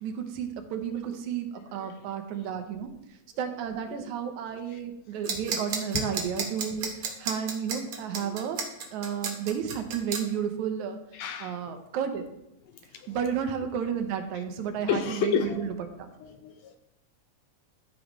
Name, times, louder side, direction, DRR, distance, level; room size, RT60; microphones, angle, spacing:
voice 1, 0.0-2.9 3.4-6.9 7.2-8.6 8.9-11.0 11.4-12.2 13.1-15.7, right 8 dB, 80° right, 6 dB, 2.2 m, -32 dB
voice 2, 1.7-2.2 3.9-4.1 4.7-4.8 5.3-5.5 5.9-6.0 8.2-8.4 11.1-11.7 12.7-13.2 14.3-14.4 14.9-15.7 16.2-16.8, left 7 dB, 75° left, 8 dB, 1.7 m, -33 dB
sound 1, 5.2-10.2, right 6 dB, 60° right, 1.8 m, -31 dB
14.0 x 5.3 x 3.1 m, 0.85 s
omnidirectional pair, 3.4 m